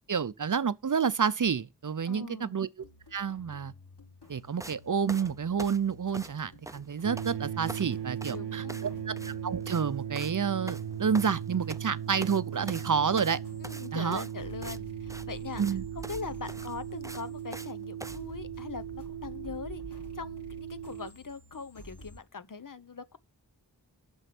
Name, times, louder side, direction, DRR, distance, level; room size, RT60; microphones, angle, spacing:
voice 1, 0.1-2.7 3.1-3.7 4.3-13.4 13.9-14.2 15.6-15.8, right 6 dB, 50° right, 0.6 m, -29 dB
voice 2, 2.1-2.6 8.3-9.0 13.6-23.2, left 5 dB, 50° left, 0.8 m, -42 dB
sound 1, 2.8-22.2, left 1 dB, 70° left, 5.1 m, -51 dB
sound 2, 4.6-4.8 5.1-6.4 6.6-7.3 7.6-7.9 8.2-8.4 8.7-8.9 9.2-9.4 9.6-9.9 10.2-10.4 10.7-11.9 12.2-12.4 12.7-14.8 15.1-15.3 15.6-15.7 16.0-16.2 16.5-17.7 18.0-18.2, right 1 dB, 10° right, 0.6 m, -44 dB
sound 3, 7.0-21.1, right 9 dB, 90° right, 0.6 m, -38 dB
8.9 x 6.3 x 6.0 m
wide cardioid pair, 40°, 41 cm